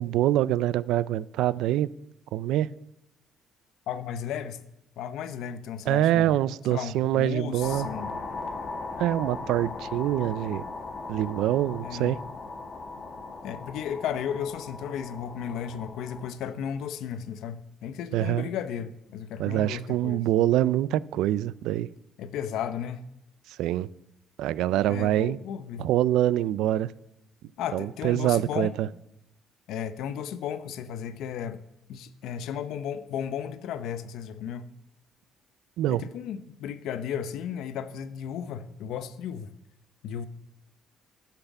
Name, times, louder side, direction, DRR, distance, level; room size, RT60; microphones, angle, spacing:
voice 1, 0.0-1.9 2.3-2.7 5.9-7.9 9.0-10.6 11.1-12.2 18.1-18.5 19.4-21.9 23.6-23.9 24.4-25.4 25.8-26.9 27.7-28.9 35.8-36.0, right 13 dB, 80° right, 0.3 m, -25 dB
voice 2, 3.9-4.6 5.0-6.3 6.7-8.1 11.8-12.1 13.4-20.2 22.2-23.0 24.9-25.9 27.6-28.7 29.7-31.6 31.9-34.7 35.9-39.5 40.0-40.3, left 8 dB, 75° left, 0.7 m, -34 dB
sound 1, 7.6-16.3, left 3 dB, 40° left, 1.3 m, -38 dB
10.0 x 5.8 x 7.1 m
cardioid pair, 120°, 0 cm